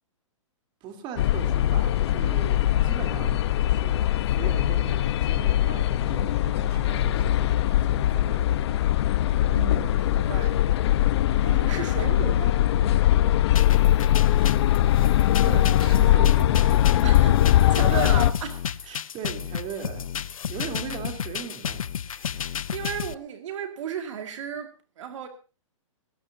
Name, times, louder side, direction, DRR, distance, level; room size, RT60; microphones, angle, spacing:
voice 1, 0.8-8.4 15.4-16.9 18.8-21.8, right 6 dB, 30° right, 3.6 m, -39 dB
sound 1, 1.2-18.3, left 13 dB, 55° left, 1.0 m, -21 dB
voice 2, 9.5-10.6 11.4-12.6 17.0-19.0 22.1-25.3, right 8 dB, 65° right, 2.4 m, -35 dB
sound 2, 13.5-23.1, left 8 dB, 90° left, 0.7 m, -32 dB
21.0 x 17.5 x 2.8 m
hypercardioid pair, 145°, 17 cm